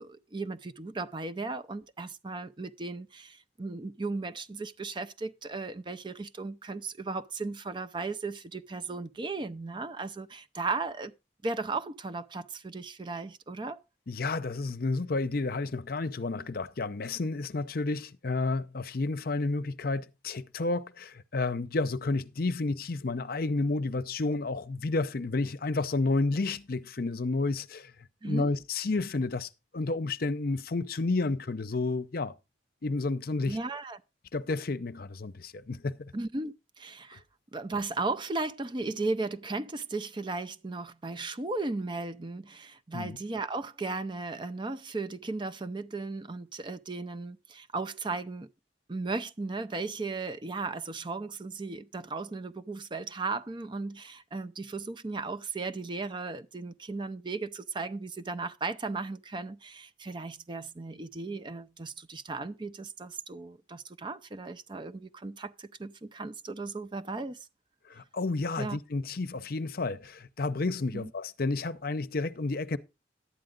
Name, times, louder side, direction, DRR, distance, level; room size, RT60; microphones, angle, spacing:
voice 1, 0.0-11.1 11.4-13.8 28.2-28.6 33.5-34.0 36.1-37.2 37.5-48.5 48.9-67.4 68.6-68.8 70.9-71.1, right 3 dB, 25° right, 0.6 m, -36 dB
voice 2, 14.1-27.9 28.2-32.3 32.8-33.6 34.3-36.1 42.9-43.2 67.9-72.8, left 3 dB, 60° left, 0.7 m, -31 dB
11.5 x 8.9 x 3.8 m
head